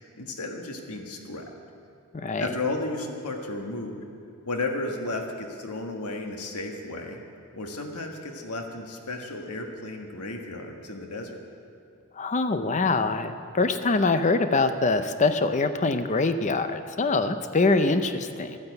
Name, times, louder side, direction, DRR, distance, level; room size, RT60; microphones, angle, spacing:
voice 1, 0.0-1.5 2.4-4.0 4.5-7.2 7.5-11.4, left 2 dB, 85° left, 2 dB, 1.5 m, -33 dB
voice 2, 2.1-2.5 12.2-18.6, left 3 dB, 35° left, 9 dB, 0.6 m, -24 dB
12.0 x 9.6 x 8.1 m, 2.4 s
head